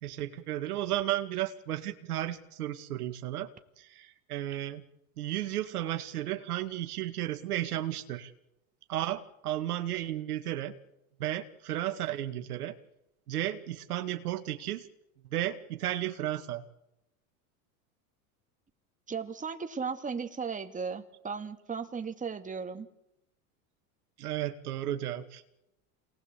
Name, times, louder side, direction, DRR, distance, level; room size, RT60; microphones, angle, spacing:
voice 1, 0.0-3.5 3.8-4.8 5.2-8.3 8.9-10.7 11.2-12.7 13.3-14.9 15.3-16.6 24.2-25.4, right 13 dB, 85° right, 8 dB, 2.2 m, -33 dB
voice 2, 19.1-22.9, right 5 dB, 15° right, 7 dB, 2.4 m, -36 dB
27.5 x 20.0 x 8.4 m, 0.87 s
hypercardioid pair, 105°, 44 cm